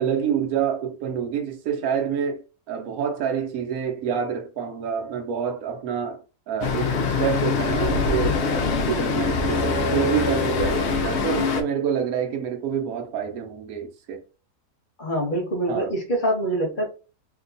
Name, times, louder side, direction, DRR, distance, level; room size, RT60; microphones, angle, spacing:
voice 1, 0.0-14.2 15.7-15.9, right 8 dB, 70° right, 1.1 m, -27 dB
Traffic noise roadway noise, 6.6-11.6, left 4 dB, 70° left, 0.6 m, -23 dB
voice 2, 15.0-16.9, right 1 dB, 35° left, 1.0 m, -25 dB
2.9 x 2.2 x 3.9 m
omnidirectional pair, 1.7 m